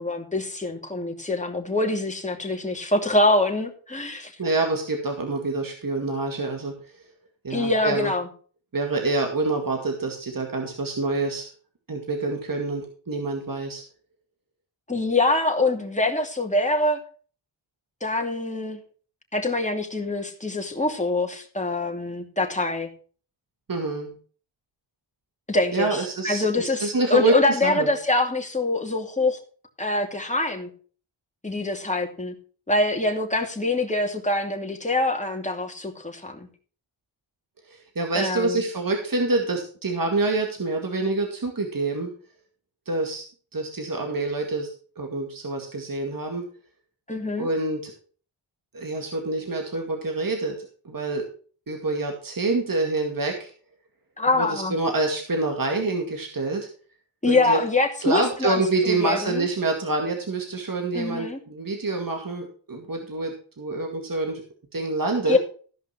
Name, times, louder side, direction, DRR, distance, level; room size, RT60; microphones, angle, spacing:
voice 1, 0.0-4.3 7.5-8.3 14.9-17.0 18.0-18.8 19.3-22.9 25.5-29.4 29.8-30.7 31.4-32.3 32.7-36.5 38.1-38.6 47.1-47.5 54.2-54.8 57.2-59.5 60.9-61.4 65.3-65.4, left 2 dB, 15° left, 2 dB, 2.6 m, -24 dB
voice 2, 4.4-6.7 7.4-8.1 8.7-11.5 11.9-13.8 23.7-24.1 25.7-27.9 37.7-42.1 42.9-43.3 43.5-44.7 45.0-46.5 47.4-47.9 48.7-51.3 51.7-53.5 54.3-56.7 57.3-57.6 58.0-64.4 64.7-65.4, right 2 dB, 45° right, 3 dB, 2.2 m, -26 dB
14.5 x 5.4 x 5.8 m, 0.42 s
cardioid pair, 45°, 49 cm